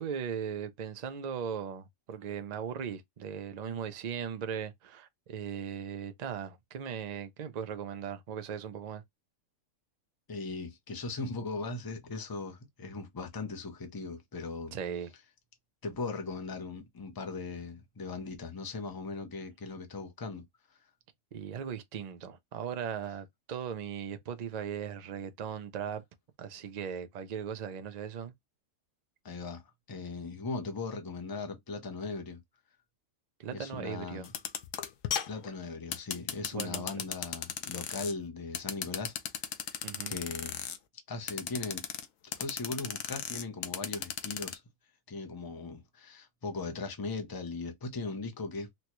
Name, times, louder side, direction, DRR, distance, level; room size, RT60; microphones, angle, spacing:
voice 1, 0.0-9.0 14.7-15.1 21.3-26.0 26.4-28.3 33.4-34.3 36.5-36.9 39.8-40.2, right 7 dB, 65° right, 0.4 m, -38 dB
voice 2, 10.3-14.8 15.8-20.8 29.2-29.6 29.9-32.4 33.5-34.3 35.3-39.1 39.4-40.6 41.1-41.9 42.4-44.6 45.1-48.7, left 3 dB, 35° left, 0.3 m, -39 dB
sound 1, 34.2-38.1 38.5-40.8 41.3-42.1 42.3-44.5, left 9 dB, 75° left, 1.0 m, -35 dB
4.2 x 2.2 x 2.9 m
omnidirectional pair, 1.4 m